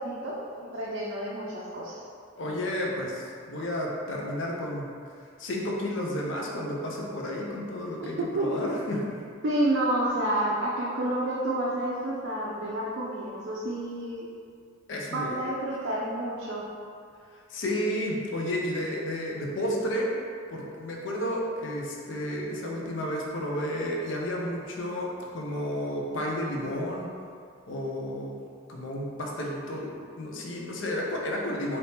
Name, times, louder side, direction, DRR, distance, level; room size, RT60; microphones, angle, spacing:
voice 1, 0.0-2.0 8.2-8.5 9.4-14.3 15.1-16.7, right 1 dB, 70° right, -5 dB, 0.4 m, -29 dB
voice 2, 2.4-4.9 5.4-9.2 14.9-15.3 17.5-20.1 20.5-27.1 27.7-28.4 28.7-31.8, left 1 dB, 70° left, -2 dB, 0.5 m, -32 dB
2.8 x 2.7 x 3.3 m, 2.3 s
head